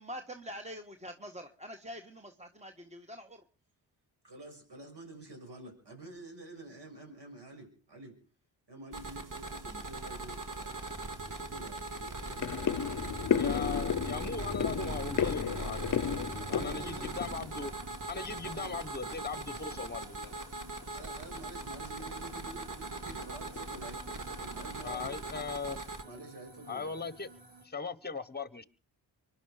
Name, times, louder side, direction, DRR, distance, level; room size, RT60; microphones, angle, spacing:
voice 1, 0.0-3.4, equal, 15° right, 6 dB, 1.6 m, -45 dB
voice 2, 4.2-8.2 8.7-10.9 11.2-12.2 16.1-17.1 17.5-17.7 18.4-18.8 20.9-25.2 26.0-26.9, right 2 dB, 65° right, 4 dB, 6.4 m, -49 dB
sound 1, 8.9-26.0, right 2 dB, 45° right, 2.1 m, -41 dB
sound 2, 10.3-27.6, right 4 dB, 90° right, 3.5 m, -50 dB
sound 3, 10.9-11.0 11.4-11.6 11.9-18.5 18.7-19.4 19.7-20.0 20.3-20.4 20.8-21.0 21.3-21.5 22.0-22.5 23.1-23.3 23.6-24.3 24.6-24.7, left 8 dB, 45° left, 0.8 m, -34 dB
voice 3, 13.3-15.9 16.4-17.7 18.1-20.3 24.8-25.8 26.7-27.3 27.6-28.6, left 4 dB, 20° left, 17 dB, 1.2 m, -39 dB
24.5 x 11.0 x 5.1 m, 0.40 s
supercardioid pair, 45°, 44 cm